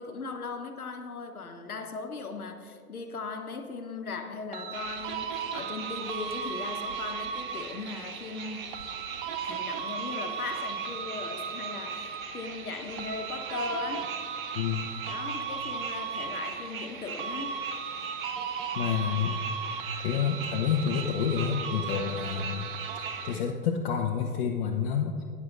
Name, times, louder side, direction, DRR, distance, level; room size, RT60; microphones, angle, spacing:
voice 1, 0.0-8.7 9.4-14.1 15.1-17.6, left 4 dB, 75° left, 5 dB, 1.1 m, -38 dB
sound 1, 4.5-7.9 8.7-12.5 13.0-16.9 17.2-23.5, right 6 dB, 40° right, 0.6 m, -36 dB
sound 2, 4.7-23.4, right 6 dB, 65° right, 1.0 m, -41 dB
voice 2, 14.5-14.8 18.7-19.4 20.0-25.2, left 7 dB, 40° left, 1 dB, 0.8 m, -29 dB
19.0 x 9.6 x 2.5 m, 2.3 s
figure-of-eight pair, 100°, 44 cm